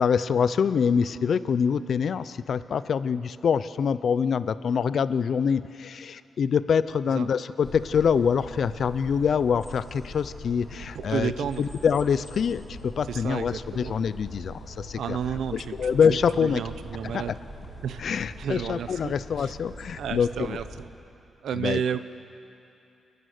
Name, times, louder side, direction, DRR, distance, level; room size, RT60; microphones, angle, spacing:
voice 1, 0.0-11.3 11.6-15.2 15.5-16.6 17.0-17.4 18.0-20.6 21.5-21.8, left 6 dB, 60° left, 15 dB, 0.6 m, -25 dB
sound 1, 7.6-20.8, equal, 20° left, 5.4 m, -42 dB
voice 2, 11.0-11.7 13.1-13.9 14.9-15.8 16.4-17.3 17.8-18.0 18.4-19.1 19.4-19.5 20.0-20.9 21.4-22.0, right 8 dB, 85° right, 12 dB, 0.7 m, -31 dB
28.0 x 11.0 x 9.5 m, 2.7 s
cardioid pair, 110°, 0 cm